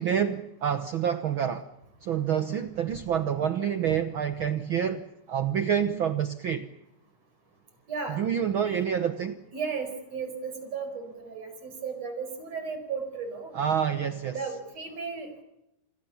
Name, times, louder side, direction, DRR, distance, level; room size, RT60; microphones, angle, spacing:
voice 1, 0.0-1.7 2.0-6.7 8.1-9.4 13.5-14.4, right 8 dB, 80° right, 11 dB, 1.1 m, -27 dB
voice 2, 7.9-8.2 8.6-8.8 9.5-13.6 14.3-15.3, right 5 dB, 50° right, 7 dB, 6.1 m, -35 dB
28.5 x 22.5 x 7.2 m, 0.86 s
omnidirectional pair, 3.9 m